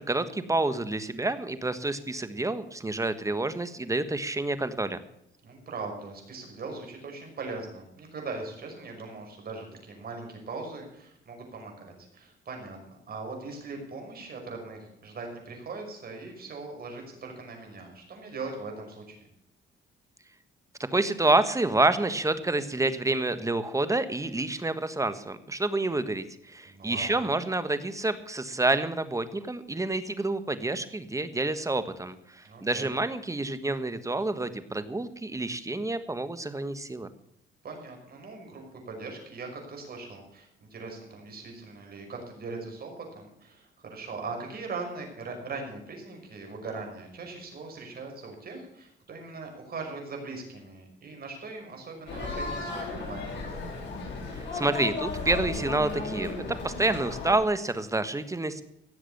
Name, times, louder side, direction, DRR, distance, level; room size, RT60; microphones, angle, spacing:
voice 1, 0.0-5.0 20.9-37.1 54.5-58.6, right 2 dB, 15° right, 12 dB, 1.4 m, -28 dB
voice 2, 5.4-19.2 26.6-27.3 32.4-32.9 37.6-53.4, right 3 dB, 50° right, 2 dB, 5.8 m, -40 dB
sound 1, 52.1-57.4, left 3 dB, 65° left, 6.8 m, -35 dB
17.0 x 7.4 x 7.1 m, 0.78 s
cardioid pair, 90°, 20 cm